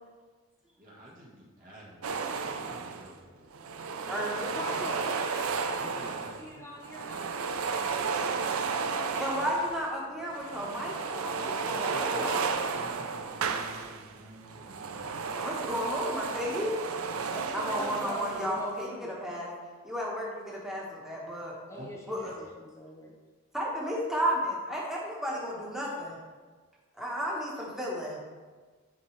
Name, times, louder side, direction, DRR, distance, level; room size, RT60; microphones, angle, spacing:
voice 1, 0.8-2.2 2.5-3.5 5.8-6.7 11.7-12.2 12.7-15.3 21.7-21.9 22.2-22.3, right 1 dB, 40° right, -4 dB, 1.5 m, -50 dB
sound 1, 2.0-3.1 3.5-6.5 6.8-9.9 10.3-14.1 14.4-18.7, right 5 dB, 80° right, 0.5 m, -33 dB
voice 2, 3.9-4.8 9.2-12.5 15.4-16.8 17.5-19.5 19.8-21.6 22.1-22.3 23.5-26.2 27.0-28.2, equal, ahead, -4 dB, 1.4 m, -33 dB
voice 3, 4.4-6.1 6.4-8.4 11.9-13.1 17.2-19.1 21.7-23.2, equal, 15° left, -3 dB, 0.7 m, -43 dB
10.0 x 4.4 x 3.3 m, 1.4 s
head